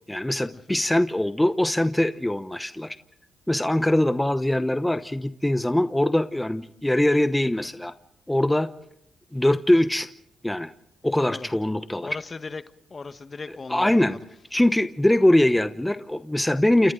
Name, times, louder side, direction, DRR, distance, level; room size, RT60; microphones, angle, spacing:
voice 1, 0.1-3.0 3.5-7.9 8.3-8.7 9.3-10.1 10.4-10.7 11.0-12.1 13.5-14.2 14.5-16.9, left 1 dB, 10° left, 0.9 m, -22 dB
voice 2, 12.0-12.6 12.9-14.2, left 4 dB, 40° left, 1.3 m, -37 dB
30.0 x 28.5 x 3.8 m
supercardioid pair, 65°, 0 cm